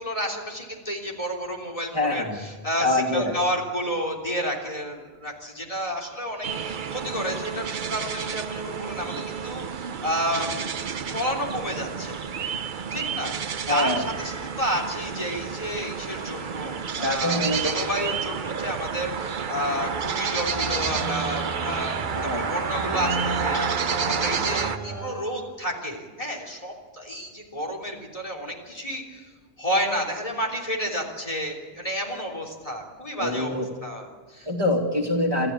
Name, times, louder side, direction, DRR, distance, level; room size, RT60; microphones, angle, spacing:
voice 1, 0.0-9.1 9.4-10.7 11.0-12.3 12.9-13.3 13.7-29.2 29.6-34.5, equal, 35° left, 1 dB, 3.4 m, -31 dB
voice 2, 1.9-2.4 2.8-3.3 13.7-14.1 17.0-17.7 22.2-22.5 33.2-33.7 34.4-35.5, left 1 dB, 20° right, -2 dB, 2.6 m, -25 dB
sound 1, 6.4-24.8, right 6 dB, 50° right, 0.9 m, -30 dB
sound 2, 20.4-25.7, right 1 dB, 15° left, 7.3 m, -34 dB
27.0 x 14.5 x 8.4 m, 1.4 s
omnidirectional pair, 1.1 m